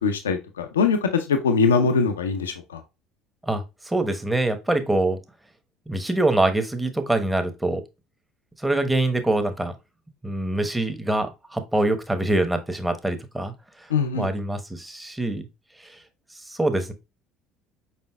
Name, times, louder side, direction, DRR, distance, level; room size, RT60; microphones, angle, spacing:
voice 1, 0.0-2.8 13.9-14.3, left 5 dB, 85° left, 0.5 m, -22 dB
voice 2, 3.5-5.2 5.9-7.8 8.6-9.7 10.2-13.5 14.1-15.5 16.5-16.9, right 2 dB, 10° right, 1.0 m, -24 dB
5.2 x 4.2 x 2.2 m
hypercardioid pair, 65°, 0 cm